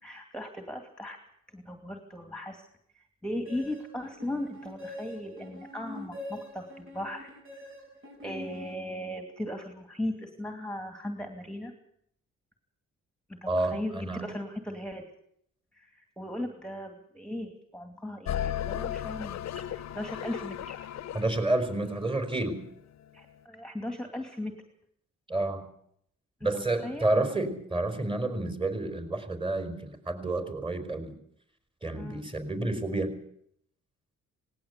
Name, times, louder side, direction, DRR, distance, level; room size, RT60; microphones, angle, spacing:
voice 1, 0.0-1.2 1.5-2.6 2.9-7.3 8.2-11.7 13.3-15.0 15.7-20.8 23.1-24.5 26.4-27.1 31.9-32.3, left 1 dB, 5° left, 5 dB, 2.5 m, -37 dB
sound 1, 3.5-9.3, left 1 dB, 45° right, 7.8 m, -45 dB
voice 2, 13.5-14.3 21.1-22.6 25.3-25.6 26.4-31.1 31.8-33.1, right 2 dB, 15° right, 8 dB, 4.8 m, -30 dB
sound 2, 18.3-22.6, left 10 dB, 70° left, 0.8 m, -35 dB
18.5 x 18.0 x 8.3 m, 0.70 s
cardioid pair, 85°, 29 cm